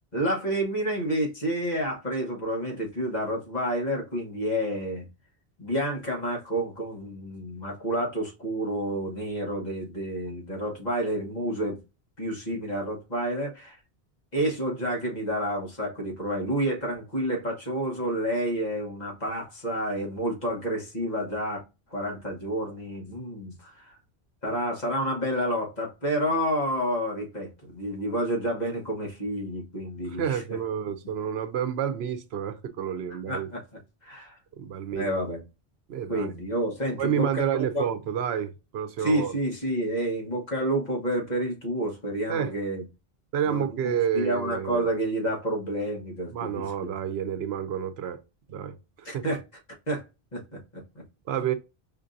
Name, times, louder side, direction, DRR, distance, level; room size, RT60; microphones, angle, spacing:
voice 1, 0.1-5.1 5.6-11.8 12.2-13.8 14.3-21.6 21.9-24.0 24.4-30.4 33.3-33.6 34.0-34.4 34.9-35.4 36.1-37.9 39.0-42.8 43.5-46.9 49.0-49.4 49.9-50.0 50.3-50.8, right 1 dB, 45° left, 1.4 m, -29 dB
voice 2, 30.1-33.5 34.6-35.1 35.9-36.3 37.0-39.3 42.3-42.5 43.3-44.9 46.3-48.2 48.5-49.2 51.3-51.5, right 8 dB, 85° right, 0.9 m, -29 dB
5.1 x 2.5 x 2.5 m
omnidirectional pair, 1.0 m